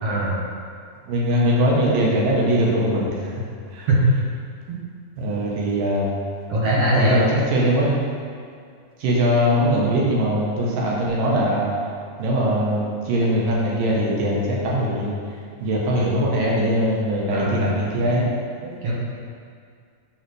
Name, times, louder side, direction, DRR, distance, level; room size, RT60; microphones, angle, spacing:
voice 1, 0.0-0.4 3.9-4.0 4.7-4.8 6.5-7.2 17.3-18.2 18.6-18.9, right 1 dB, 60° right, -5 dB, 2.1 m, -22 dB
voice 2, 1.1-3.4 3.7-3.9 5.2-6.1 6.7-8.0 9.0-11.7 12.2-15.1 15.6-18.3, equal, 85° right, -4 dB, 3.0 m, -21 dB
7.3 x 4.1 x 6.3 m, 2.2 s
omnidirectional pair, 3.8 m